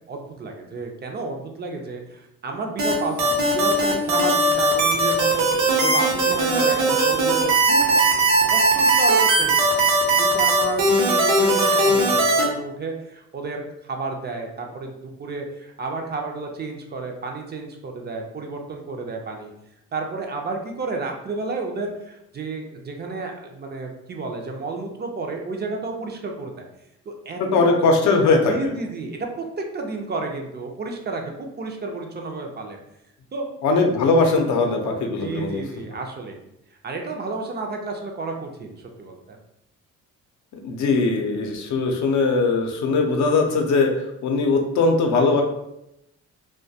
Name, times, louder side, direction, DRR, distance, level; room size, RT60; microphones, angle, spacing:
voice 1, 0.1-5.5 5.8-8.0 8.5-9.7 10.2-19.5 19.9-26.7 27.1-27.7 28.5-32.8 33.3-33.5 35.2-36.4 36.8-39.4, right 3 dB, 35° right, 2 dB, 0.4 m, -31 dB
sound 1, 2.8-12.4, right 2 dB, 75° right, 0.8 m, -19 dB
voice 2, 27.4-28.5 33.6-35.6 40.6-43.9 44.2-45.4, left 3 dB, 70° left, 2 dB, 0.5 m, -20 dB
2.2 x 2.2 x 2.7 m, 0.83 s
cardioid pair, 90°, 30 cm